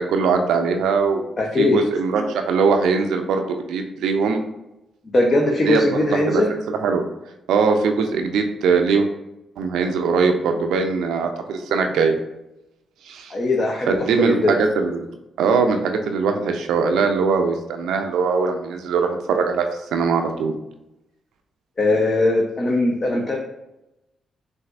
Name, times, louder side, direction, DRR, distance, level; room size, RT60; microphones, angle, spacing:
voice 1, 0.0-4.4 5.6-5.8 6.1-7.1 7.5-9.1 9.6-12.2 13.0-13.3 13.9-15.1 15.4-20.5, right 5 dB, 75° right, 5 dB, 0.4 m, -21 dB
voice 2, 1.4-1.8 5.1-6.5 13.3-14.5 21.8-23.4, left 2 dB, 45° left, 0 dB, 0.7 m, -20 dB
5.9 x 2.5 x 2.5 m, 0.92 s
hypercardioid pair, 45°, 0 cm